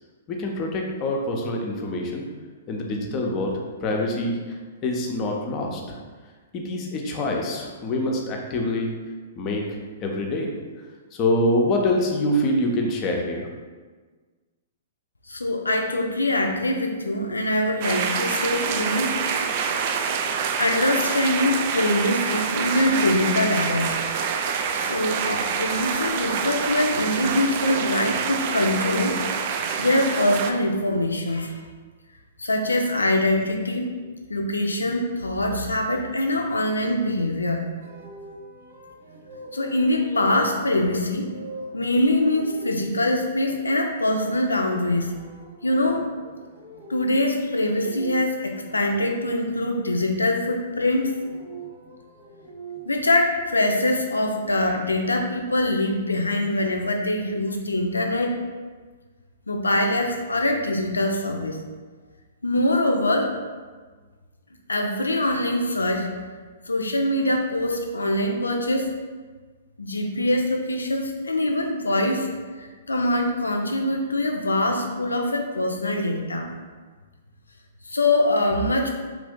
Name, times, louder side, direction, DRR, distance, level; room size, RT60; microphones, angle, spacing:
voice 1, 0.3-2.3 2.7-3.5 3.8-4.4 4.8-6.0 6.5-8.9 9.4-10.5 11.1-13.5, left 1 dB, 30° left, 0 dB, 0.6 m, -25 dB
voice 2, 15.3-19.2 20.6-23.9 24.7-29.2 29.8-31.6 32.4-33.9 34.3-37.6 39.5-41.3 41.7-45.1 45.6-46.1 46.9-51.1 52.9-58.4 59.5-61.6 62.4-63.3 64.7-66.1 66.7-68.9 69.8-72.3 72.6-76.5 77.9-78.9, left 1 dB, 85° left, 3 dB, 0.4 m, -23 dB
sound 1, 17.8-30.5, right 6 dB, 45° right, 0.3 m, -26 dB
sound 2, 37.8-49.7 50.8-53.1, right 3 dB, 65° right, 1.5 m, -43 dB
3.1 x 2.5 x 3.6 m, 1.4 s
figure-of-eight pair, 115°, 0 cm